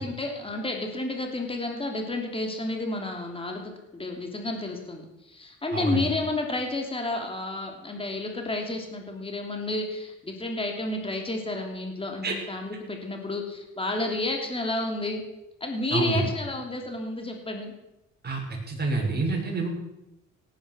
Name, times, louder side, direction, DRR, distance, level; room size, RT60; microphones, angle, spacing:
voice 1, 0.0-15.2 15.6-17.7, left 2 dB, 20° left, 3 dB, 3.0 m, -31 dB
voice 2, 5.7-6.0 12.2-12.4 15.9-16.2 18.2-18.4 18.7-19.7, right 3 dB, 35° right, -1 dB, 6.4 m, -27 dB
18.0 x 10.0 x 6.3 m, 0.92 s
cardioid pair, 90°, 30 cm